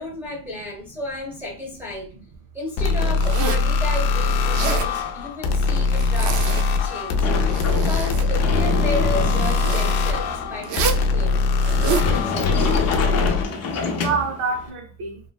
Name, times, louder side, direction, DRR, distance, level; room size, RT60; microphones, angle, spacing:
voice 1, 0.0-2.1 2.5-7.3 7.7-11.4 11.8-12.7, left 2 dB, 5° right, 0.6 m, -32 dB
sound 1, 2.8-13.4, left 4 dB, 85° left, 0.6 m, -21 dB
Zipper (clothing), 3.2-3.7 4.4-4.9 5.9-6.8 7.3-8.3 9.4-9.9 10.6-11.1 11.6-12.1, right 7 dB, 55° right, 0.4 m, -28 dB
voice 2, 4.8-5.2 6.8-6.9 14.0-15.2, right 4 dB, 70° right, 0.8 m, -30 dB
Sliding door, 7.2-14.7, left 4 dB, 40° left, 0.5 m, -28 dB
3.1 x 2.1 x 2.2 m
cardioid pair, 175°, 38 cm